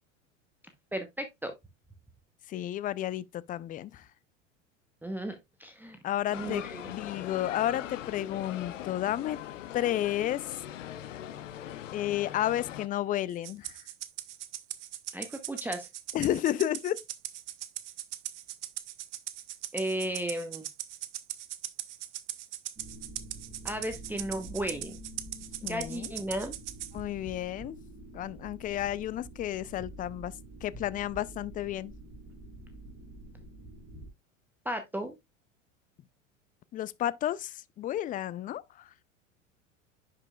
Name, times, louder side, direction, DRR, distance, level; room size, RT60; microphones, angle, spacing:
voice 1, 0.9-1.5 5.0-6.0 6.3-6.9 15.1-15.9 19.7-20.6 23.6-25.0 25.6-26.5 34.6-35.1, right 1 dB, 5° right, 0.9 m, -35 dB
voice 2, 2.5-4.1 6.0-9.4 9.7-10.6 11.9-13.8 16.1-17.0 25.6-26.1 26.9-27.8 28.1-30.3 30.6-31.9 36.7-38.9, left 12 dB, 20° left, 0.4 m, -32 dB
sound 1, 6.3-12.9, left 11 dB, 70° left, 0.9 m, -41 dB
Rattle (instrument), 13.4-26.9, right 14 dB, 65° right, 0.9 m, -40 dB
sound 2, 22.8-34.1, right 1 dB, 20° right, 2.5 m, -47 dB
10.5 x 5.5 x 2.3 m
figure-of-eight pair, 85°, 39 cm